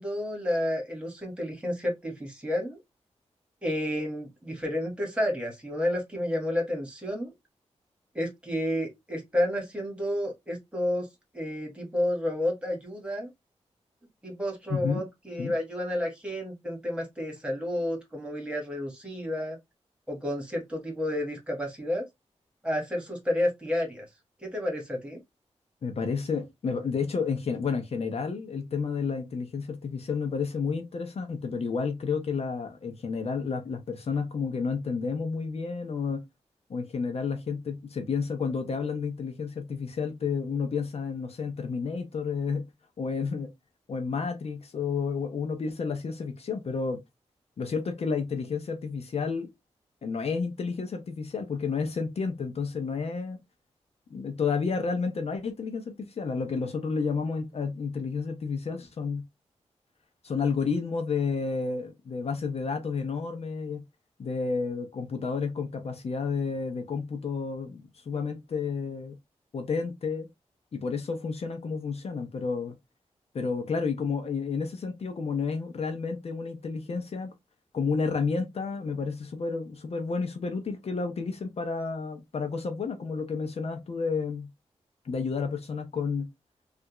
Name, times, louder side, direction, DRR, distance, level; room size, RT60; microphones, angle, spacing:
voice 1, 0.0-2.8 3.6-7.3 8.1-11.1 11.3-13.3 14.2-19.6 20.1-22.0 22.6-24.0 24.4-25.2, left 1 dB, 10° right, 1.5 m, -30 dB
voice 2, 14.7-15.0 15.4-15.5 25.8-36.2 36.7-42.7 43.0-43.5 43.9-47.0 47.6-49.5 50.0-53.4 54.1-59.2 60.2-63.8 64.2-69.2 69.5-70.3 70.7-72.7 73.3-77.3 77.7-84.5 85.0-86.3, left 5 dB, 60° left, 0.7 m, -31 dB
3.3 x 2.4 x 3.0 m
wide cardioid pair, 100°, 12 cm